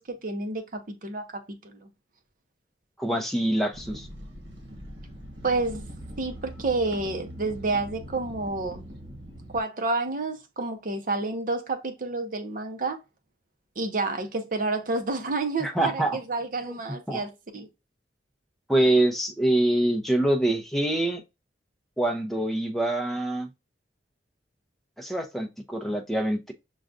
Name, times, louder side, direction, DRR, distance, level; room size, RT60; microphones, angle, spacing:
voice 1, 0.0-1.9 5.4-5.8 6.2-8.8 9.5-13.0 13.8-17.7, right 3 dB, 50° right, 0.7 m, -29 dB
voice 2, 3.0-4.1 15.6-16.2 16.7-16.8 17.1-17.2 18.7-21.2 22.0-23.5 25.0-26.5, right 1 dB, ahead, 0.6 m, -25 dB
sound 1, 3.7-9.6, equal, 85° right, 1.2 m, -42 dB
6.2 x 2.3 x 2.5 m
head